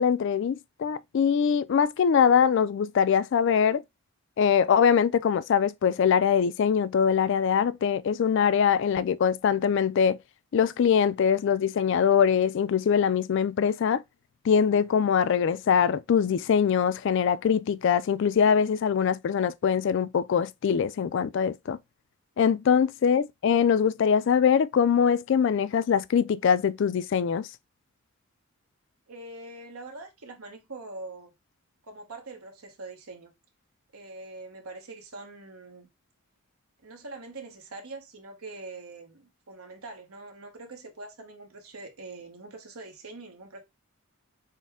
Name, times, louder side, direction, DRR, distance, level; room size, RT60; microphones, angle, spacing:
voice 1, 0.0-3.8 4.4-10.2 10.5-14.0 14.5-21.8 22.4-27.5, left 7 dB, 55° left, 0.3 m, -23 dB
voice 2, 29.1-31.3 31.8-33.3 33.9-35.9 36.8-43.6, right 3 dB, 90° right, 1.2 m, -43 dB
6.3 x 2.2 x 3.5 m
head